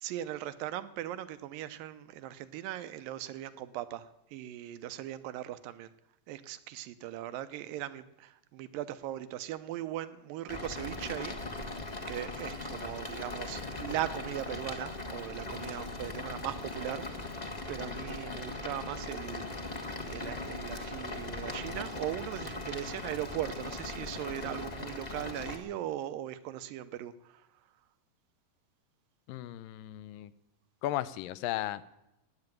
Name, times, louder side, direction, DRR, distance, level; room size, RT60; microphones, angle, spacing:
voice 1, 0.0-5.9 6.3-11.7 12.1-17.4 17.7-19.8 20.1-27.4, right 13 dB, 90° right, 12 dB, 2.6 m, -39 dB
sound 1, 10.5-25.6, left 2 dB, 45° left, 0.5 m, -39 dB
voice 2, 29.3-30.3 30.8-31.9, left 14 dB, 85° left, 15 dB, 2.4 m, -35 dB
15.5 x 9.9 x 9.2 m, 0.87 s
omnidirectional pair, 3.9 m